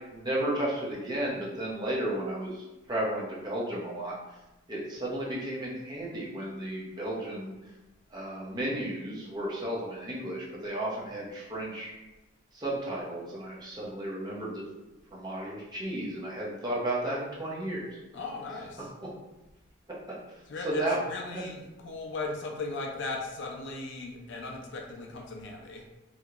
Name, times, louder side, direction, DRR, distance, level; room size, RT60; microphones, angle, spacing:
voice 1, 0.1-4.1 4.7-7.5 8.1-11.9 12.5-14.7 15.1-18.0 20.6-21.0 21.3-21.5, right 1 dB, 20° right, -5 dB, 0.6 m, -33 dB
voice 2, 18.1-18.9 20.5-25.8, left 3 dB, 60° left, 1 dB, 0.4 m, -37 dB
2.9 x 2.7 x 2.4 m, 1.0 s
head